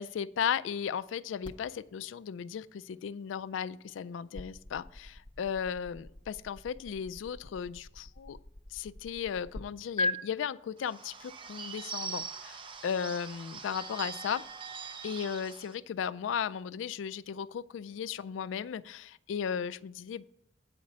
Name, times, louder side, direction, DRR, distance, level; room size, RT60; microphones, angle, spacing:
voice 1, 0.0-8.4 8.7-14.4 15.0-20.2, left 7 dB, 85° left, 15 dB, 0.3 m, -36 dB
sound 1, 1.4-9.6 10.0-10.1, left 2 dB, 25° left, 0.6 m, -41 dB
Bird / Bell, 10.8-15.8, right 6 dB, 30° right, 0.5 m, -42 dB
8.5 x 5.0 x 7.4 m, 0.77 s
head